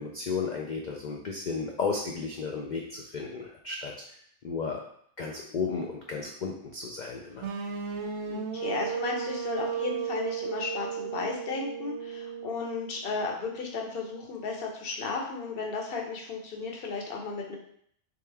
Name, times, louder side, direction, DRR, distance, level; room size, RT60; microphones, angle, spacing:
voice 1, 0.0-3.9 4.4-4.8 5.2-7.5, left 5 dB, 85° left, 0 dB, 0.4 m, -33 dB
sound 1, 7.4-13.3, right 7 dB, 70° right, 0.8 m, -35 dB
voice 2, 8.3-17.6, left 4 dB, 50° left, 0 dB, 0.9 m, -34 dB
3.6 x 3.3 x 3.3 m, 0.65 s
omnidirectional pair, 1.4 m